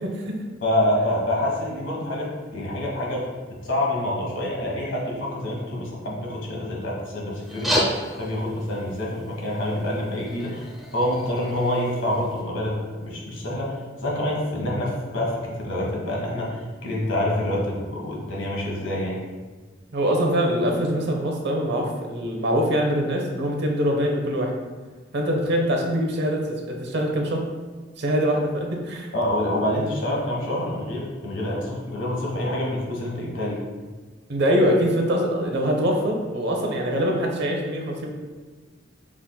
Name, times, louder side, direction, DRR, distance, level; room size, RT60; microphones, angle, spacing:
voice 1, 0.0-0.3 19.9-24.5 25.1-27.4 28.0-29.1 34.3-38.1, equal, 60° right, 1 dB, 0.8 m, -23 dB
voice 2, 0.6-3.3 3.6-19.2 29.1-33.6, left 1 dB, 80° left, -3 dB, 1.3 m, -27 dB
sound 1, 7.4-12.4, equal, ahead, 0.6 m, -31 dB
6.0 x 3.6 x 2.3 m, 1.4 s
head